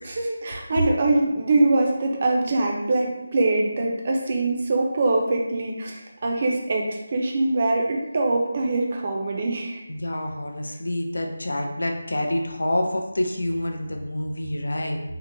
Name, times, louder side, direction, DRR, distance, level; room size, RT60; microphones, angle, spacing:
voice 1, 0.0-9.8, right 2 dB, 40° right, 1 dB, 0.4 m, -23 dB
voice 2, 9.9-15.0, left 1 dB, 80° left, 3 dB, 0.4 m, -27 dB
2.8 x 2.1 x 2.6 m, 0.94 s
figure-of-eight pair, 170°, 0 cm